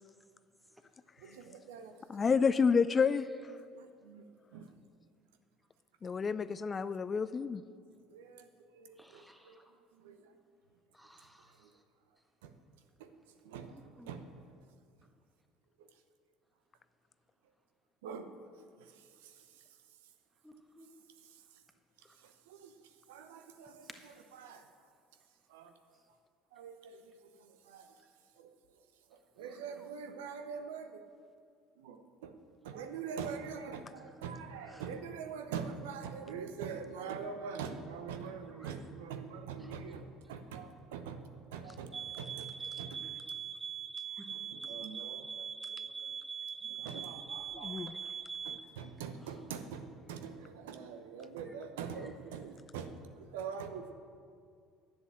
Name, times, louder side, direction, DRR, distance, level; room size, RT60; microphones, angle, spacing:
voice 1, 1.2-1.9 3.7-4.2 4.5-4.6 8.1-8.4 8.8-9.2 10.0-10.1 13.5-13.7 14.1-14.2 18.0-18.3 22.6-22.7 23.1-23.7 24.4-24.6 25.5-25.7 26.6-26.9 27.7-27.8 29.4-30.9 31.8-32.3 32.6-40.0 40.3-41.2 41.5-42.5 42.8-42.9 44.5-45.3 46.8-47.8 48.5-49.8 50.1-52.9 53.3-53.9, right 6 dB, 75° right, 8 dB, 0.8 m, -43 dB
voice 2, 2.1-3.3 6.0-7.6 47.6-47.9, left 5 dB, 35° left, 14 dB, 0.3 m, -29 dB
voice 3, 9.0-9.6 10.9-11.5 14.0-14.1 20.4-20.9 29.4-29.9 34.0-34.1 34.6-34.9 38.5-38.7 39.6-39.8 41.6-41.8 44.2-44.3 49.2-49.4 51.4-51.5 52.0-52.1, right 1 dB, 5° right, 4 dB, 1.6 m, -59 dB
sound 1, 41.9-48.7, right 7 dB, 25° right, 0.9 m, -42 dB
11.0 x 7.8 x 7.5 m, 2.2 s
hypercardioid pair, 60°, 0 cm